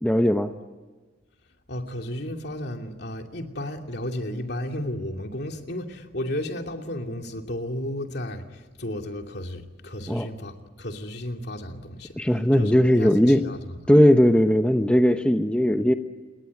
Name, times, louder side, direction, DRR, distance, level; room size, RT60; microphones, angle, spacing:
voice 1, 0.0-0.5 10.1-10.3 12.2-13.4 13.9-15.9, equal, 5° left, 7 dB, 0.8 m, -18 dB
voice 2, 1.7-12.2 12.6-13.8, left 1 dB, 60° left, 4 dB, 2.7 m, -33 dB
28.0 x 22.0 x 9.5 m, 1.3 s
head